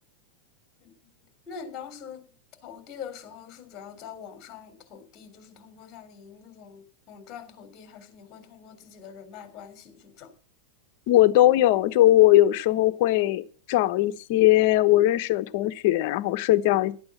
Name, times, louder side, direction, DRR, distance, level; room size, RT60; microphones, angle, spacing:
voice 1, 1.5-2.2 2.6-10.3, left 7 dB, 30° left, 8 dB, 3.6 m, -44 dB
voice 2, 11.1-16.9, left 15 dB, 55° left, 11 dB, 1.0 m, -20 dB
12.5 x 8.8 x 7.2 m, 0.43 s
supercardioid pair, 140°, 0 cm